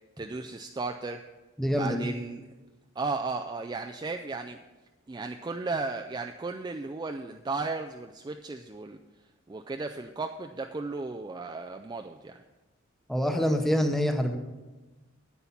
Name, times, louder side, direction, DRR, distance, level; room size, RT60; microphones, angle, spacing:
voice 1, 0.2-1.2 1.7-2.4 3.0-4.6 5.1-9.0 9.5-12.4, right 3 dB, 20° right, 5 dB, 0.3 m, -35 dB
voice 2, 1.6-2.1 13.1-14.4, equal, ahead, 5 dB, 0.8 m, -26 dB
9.7 x 8.5 x 5.8 m, 1.2 s
head